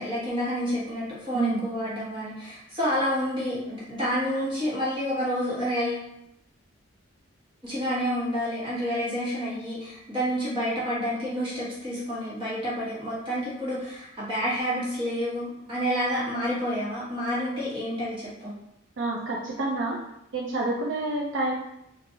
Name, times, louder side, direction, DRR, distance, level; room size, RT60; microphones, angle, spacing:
voice 1, 0.0-6.1 7.6-18.5, equal, 25° right, -8 dB, 1.2 m, -29 dB
voice 2, 1.3-1.6 19.0-20.0 20.3-21.6, right 2 dB, 65° right, -2 dB, 0.4 m, -28 dB
3.7 x 2.5 x 2.7 m, 0.81 s
head